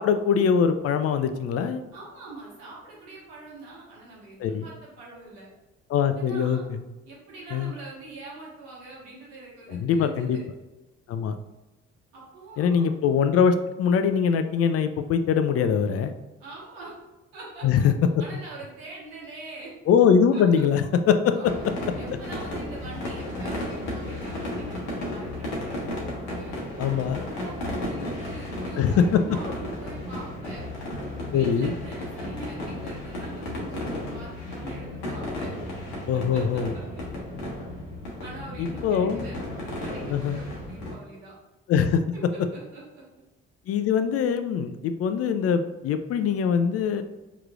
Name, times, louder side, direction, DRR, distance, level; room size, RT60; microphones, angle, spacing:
voice 1, 0.0-1.8 4.4-4.6 5.9-6.6 7.5-7.7 9.7-10.4 11.1-11.4 12.6-16.1 17.6-17.9 19.9-21.4 26.8-27.2 28.8-29.2 31.3-31.7 36.1-36.7 38.6-39.3 40.1-40.4 41.7-42.0 43.7-47.0, left 7 dB, 50° left, 9 dB, 0.4 m, -22 dB
voice 2, 1.9-5.5 6.2-6.7 7.0-10.4 12.1-12.9 16.4-16.9 17.3-17.9 18.2-19.7 20.3-20.4 21.3-21.6 22.0-26.6 27.1-30.7 31.3-35.5 36.1-36.4 38.2-41.3 42.3-43.0, right 3 dB, 80° right, -5 dB, 1.4 m, -43 dB
sound 1, 21.4-40.9, left 1 dB, 75° left, 1.1 m, -34 dB
4.7 x 3.0 x 2.3 m, 1.1 s
hypercardioid pair, 50°, 31 cm